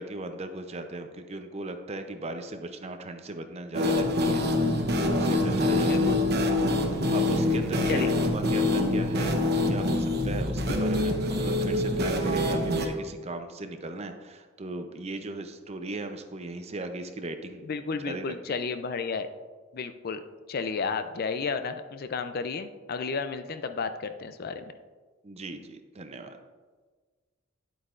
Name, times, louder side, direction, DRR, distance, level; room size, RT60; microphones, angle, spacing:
voice 1, 0.0-6.1 6.9-17.6 18.0-18.3 25.2-26.4, right 2 dB, 30° right, 7 dB, 0.6 m, -37 dB
sound 1, 3.7-12.9, left 1 dB, 50° right, 0.9 m, -25 dB
voice 2, 5.8-6.2 7.9-8.1 17.6-19.3 19.7-20.2 20.5-24.7, left 5 dB, 50° left, 10 dB, 0.4 m, -32 dB
10.0 x 8.1 x 2.5 m, 1.4 s
head